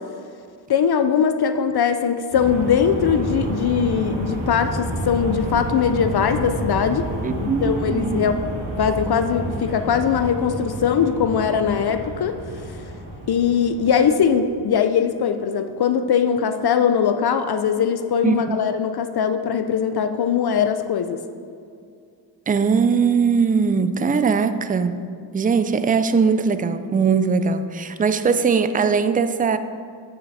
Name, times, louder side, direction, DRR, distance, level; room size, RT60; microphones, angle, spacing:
voice 1, 0.7-7.1 7.4-8.4 8.8-12.3 12.7-12.8 13.3-21.2, left 7 dB, 55° left, 9 dB, 0.6 m, -21 dB
sound 1, 2.3-14.6, right 1 dB, 85° right, 1.8 m, -30 dB
voice 2, 7.2-8.2 18.2-18.6 22.5-29.6, right 5 dB, 20° right, 11 dB, 0.4 m, -20 dB
9.0 x 5.9 x 4.1 m, 2.3 s
cardioid pair, 55°, 46 cm